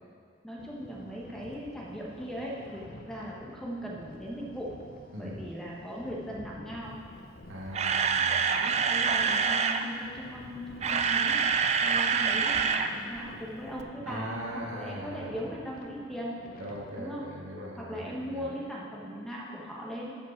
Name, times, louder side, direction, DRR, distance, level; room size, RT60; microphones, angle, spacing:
voice 1, 0.4-4.7 5.2-7.0 8.4-16.4 17.0-17.3 17.8-20.2, equal, 5° left, -4 dB, 1.1 m, -39 dB
sound 1, 0.6-17.0, left 1 dB, 50° left, 0.7 m, -50 dB
voice 2, 5.1-5.5 7.5-8.5 14.1-15.4 16.6-18.5, equal, 80° right, -3 dB, 1.7 m, -40 dB
Camera, 7.4-9.8 10.6-12.9 13.2-13.3 13.8-13.9, right 6 dB, 35° right, 0.4 m, -26 dB
13.5 x 5.1 x 4.4 m, 2.3 s
head